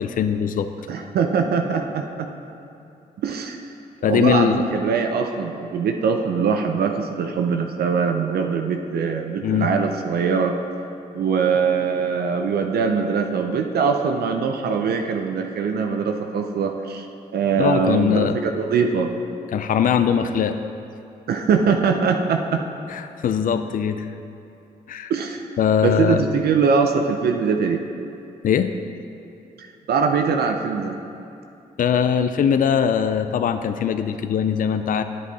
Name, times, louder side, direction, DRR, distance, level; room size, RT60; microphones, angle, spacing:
voice 1, 0.0-0.7 4.0-4.7 9.4-9.7 17.6-18.4 19.5-20.6 22.9-24.1 24.9-25.1 25.6-26.2 28.4-28.7 31.8-35.0, left 8 dB, 55° left, 10 dB, 0.5 m, -21 dB
voice 2, 0.9-2.3 3.2-3.6 4.0-10.5 11.1-17.1 17.3-19.1 21.3-22.6 25.1-25.5 25.8-27.8 29.9-31.0, right 5 dB, 75° right, 4 dB, 0.6 m, -22 dB
9.8 x 7.4 x 4.0 m, 2.7 s
supercardioid pair, 50°, 17 cm